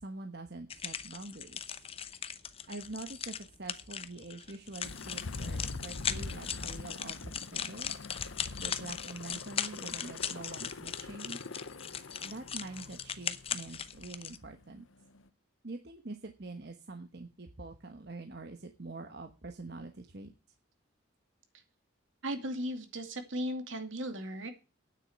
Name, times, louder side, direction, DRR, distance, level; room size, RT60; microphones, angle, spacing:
voice 1, 0.0-1.7 2.7-7.9 8.6-11.4 12.2-14.9 15.6-20.3, right 2 dB, 55° right, 5 dB, 1.2 m, -45 dB
sound 1, 0.7-14.4, left 8 dB, 30° left, 0.7 m, -39 dB
sound 2, 4.8-15.3, left 3 dB, 75° left, 0.8 m, -44 dB
voice 2, 22.2-24.5, equal, 75° right, 7 dB, 2.4 m, -36 dB
9.5 x 7.7 x 7.9 m, 0.32 s
head